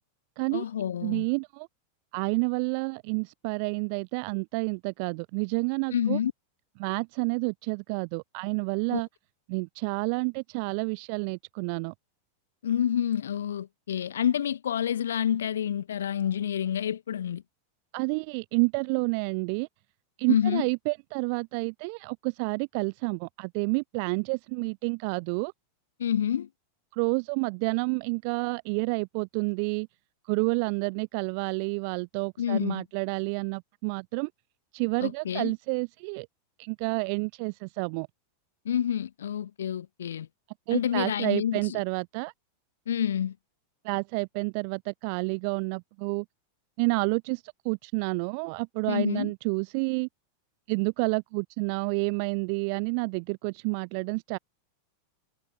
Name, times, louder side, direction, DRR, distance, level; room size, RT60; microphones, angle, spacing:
voice 1, 0.5-1.2 5.9-6.3 8.9-9.0 12.6-17.4 20.3-20.7 26.0-26.5 32.4-32.8 35.0-35.5 38.6-40.3 40.7-41.8 42.9-43.4 48.9-49.3, left 9 dB, 65° left, 0.9 m, -28 dB
voice 2, 1.0-1.7 2.1-6.2 6.8-9.1 9.5-11.9 17.9-19.7 20.2-25.5 26.9-29.9 30.3-34.3 34.7-36.3 36.6-38.1 40.7-42.3 43.8-46.2 46.8-50.1 50.7-54.4, right 36 dB, 45° right, 0.4 m, -29 dB
figure-of-eight pair, 90°, 0 cm